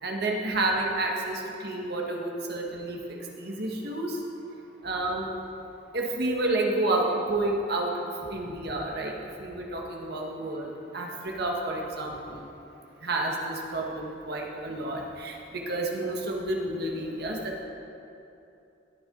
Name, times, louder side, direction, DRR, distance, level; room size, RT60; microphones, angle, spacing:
voice 1, 0.0-3.0 3.4-4.2 4.8-5.3 5.9-7.9 8.3-9.1 9.4-12.4 13.0-17.6, right 2 dB, 60° right, 0 dB, 1.6 m, -30 dB
20.5 x 7.1 x 3.9 m, 2.8 s
head